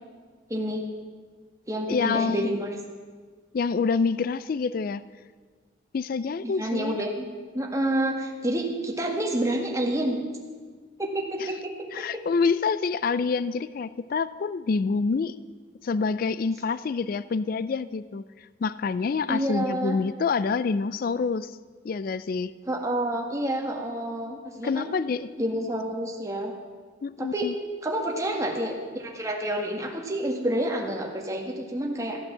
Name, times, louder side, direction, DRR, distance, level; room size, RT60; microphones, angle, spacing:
voice 1, 0.5-0.8 1.7-2.7 6.4-7.3 7.5-10.2 11.0-11.6 12.0-12.1 19.3-20.0 22.7-24.9 25.4-26.5 27.2-27.5 27.8-32.2, right 1 dB, 15° right, 0 dB, 1.7 m, -28 dB
voice 2, 1.9-2.6 3.5-5.0 5.9-7.0 11.4-11.5 11.9-15.4 15.8-21.6 21.8-22.5 24.6-25.3 27.0-27.5, left 4 dB, 45° left, 16 dB, 0.3 m, -27 dB
14.5 x 9.0 x 7.3 m, 1.5 s
head